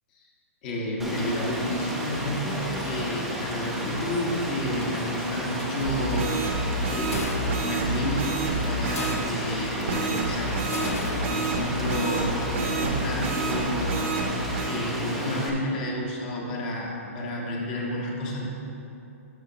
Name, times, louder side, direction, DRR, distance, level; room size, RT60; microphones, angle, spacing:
voice 1, 0.6-6.5 6.9-14.0 14.7-18.5, left 1 dB, 35° left, -3 dB, 1.5 m, -31 dB
Rain, 1.0-15.5, equal, ahead, 0.7 m, -32 dB
sound 1, 5.4-6.2 7.1-7.8 9.0-9.7 10.7-11.7, left 4 dB, 90° left, 0.7 m, -37 dB
sound 2, 5.8-9.2 9.9-14.8, right 3 dB, 60° right, 1.2 m, -29 dB
12.5 x 5.1 x 2.9 m, 2.7 s
hypercardioid pair, 155°, 8 cm